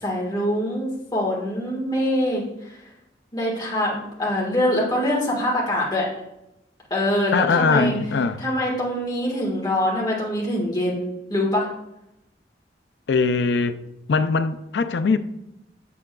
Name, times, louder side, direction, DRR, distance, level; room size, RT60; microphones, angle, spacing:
voice 1, 0.0-2.8 3.3-6.1 6.9-8.0 8.4-11.7, left 1 dB, 20° left, 1.5 m, -24 dB
voice 2, 7.3-8.4 13.1-13.8 14.1-15.2, left 4 dB, 80° left, 0.4 m, -21 dB
7.3 x 7.0 x 2.3 m
head